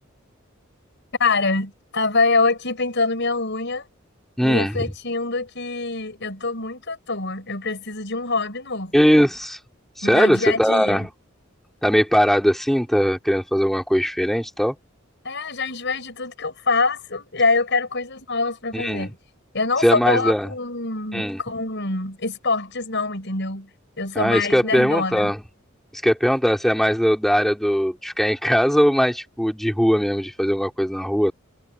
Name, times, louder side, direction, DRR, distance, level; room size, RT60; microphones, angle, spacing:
voice 1, 1.2-3.9 4.4-9.0 10.0-11.0 15.2-19.1 19.5-23.7 24.0-25.3, left 3 dB, 60° left, 6.9 m, -25 dB
voice 2, 4.4-4.7 8.9-9.6 10.0-11.1 11.8-14.8 18.7-19.1 19.8-20.5 21.1-21.4 24.2-25.4 25.9-31.3, equal, ahead, 3.4 m, -20 dB
head